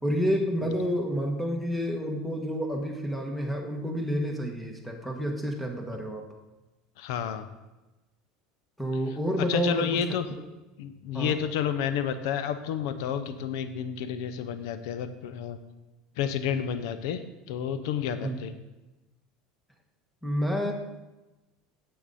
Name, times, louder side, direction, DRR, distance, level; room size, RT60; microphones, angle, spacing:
voice 1, 0.0-6.3 8.8-10.4 11.1-11.4 18.2-18.4 20.2-20.7, equal, ahead, 2 dB, 1.5 m, -29 dB
voice 2, 7.0-7.5 9.5-10.2 10.8-15.6 16.2-17.2 17.5-18.5, left 8 dB, 75° left, 11 dB, 0.7 m, -30 dB
9.0 x 7.7 x 4.2 m, 1.1 s
supercardioid pair, 110°, 3 cm